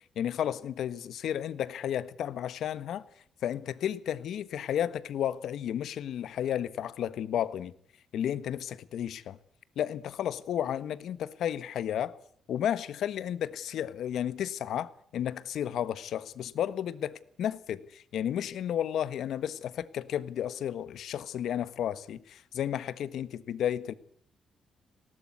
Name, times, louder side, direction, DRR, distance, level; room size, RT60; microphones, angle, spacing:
voice 1, 0.1-3.0 3.4-7.7 8.1-9.4 9.7-12.2 12.5-23.9, left 10 dB, 75° left, 1.4 m, -32 dB
19.5 x 18.5 x 9.6 m
wide cardioid pair, 165°, 0 cm